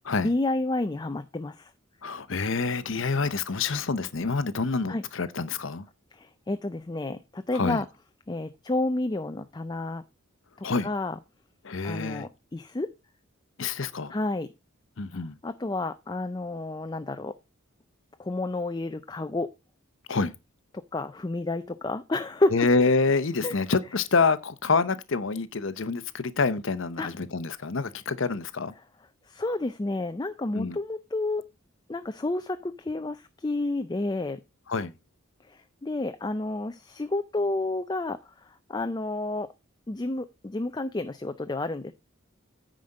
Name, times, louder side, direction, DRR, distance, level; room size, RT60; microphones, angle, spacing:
voice 1, 0.2-1.7 4.9-5.0 6.2-7.9 8.3-10.0 10.6-11.2 11.8-12.9 14.1-14.5 15.4-17.3 18.2-19.5 20.9-22.7 23.4-23.6 27.0-27.1 29.3-31.4 31.9-34.4 35.5-38.2 38.4-39.5 39.9-41.9, left 2 dB, 20° left, 0.4 m, -30 dB
voice 2, 2.0-5.9 7.5-7.8 10.6-10.9 11.6-12.3 13.6-14.1 15.0-15.3 20.1-20.3 22.5-28.7 30.5-30.8 34.7-34.9, left 4 dB, 60° left, 0.8 m, -27 dB
9.6 x 5.1 x 5.3 m
head